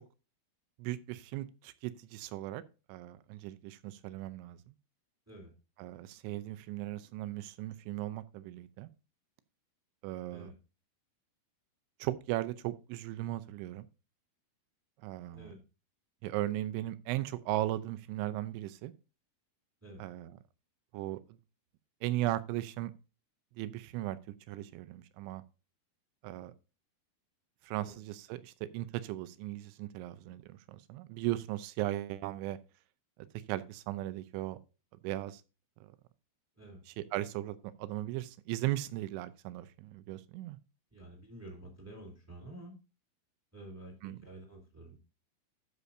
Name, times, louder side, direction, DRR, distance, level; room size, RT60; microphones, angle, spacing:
voice 1, 0.8-2.6 2.9-4.6 5.8-8.9 10.0-10.5 12.0-13.9 15.0-15.5 16.2-18.9 20.0-20.4 20.9-21.4 22.0-22.9 23.6-24.2 24.5-25.4 26.2-26.5 27.7-32.6 33.5-34.6 35.0-35.4 35.8-35.9 36.9-40.6 44.0-44.2, right 15 dB, 80° right, 2.9 m, -37 dB
voice 2, 40.9-42.7 43.5-45.0, right 1 dB, 5° right, 1.4 m, -49 dB
12.5 x 6.8 x 2.6 m
omnidirectional pair, 5.7 m